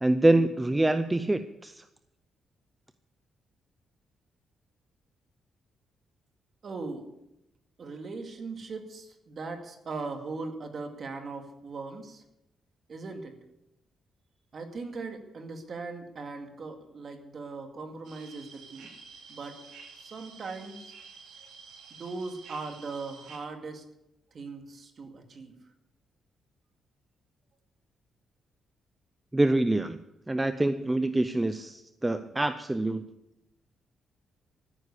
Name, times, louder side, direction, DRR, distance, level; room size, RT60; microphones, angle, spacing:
voice 1, 0.0-1.8 29.3-30.0 30.3-33.0, right 2 dB, 10° right, 11 dB, 0.5 m, -25 dB
voice 2, 6.6-7.1 7.8-12.2 12.9-13.3 14.5-18.9 19.3-19.6 20.0-20.9 21.9-23.8 24.3-25.5, right 3 dB, 40° right, 5 dB, 2.2 m, -39 dB
sound 1, 18.0-23.4, right 5 dB, 85° right, 3.4 m, -50 dB
14.5 x 9.9 x 8.3 m, 0.87 s
cardioid pair, 165°, 0 cm